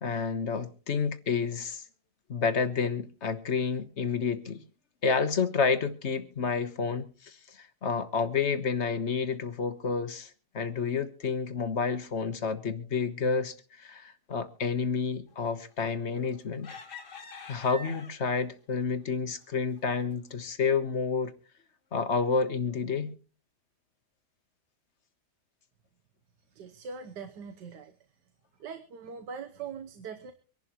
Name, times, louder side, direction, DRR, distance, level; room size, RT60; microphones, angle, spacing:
voice 1, 0.0-1.8 2.3-4.6 5.0-16.8 17.5-21.3 21.9-23.1, left 5 dB, 45° left, 1.3 m, -30 dB
sound 1, 15.8-16.2 16.6-18.4 19.0-19.2 19.6-19.8, left 3 dB, 80° left, 2.1 m, -44 dB
voice 2, 26.5-27.9 28.6-30.3, right 6 dB, 80° right, 1.6 m, -41 dB
25.0 x 11.5 x 3.0 m
omnidirectional pair, 1.8 m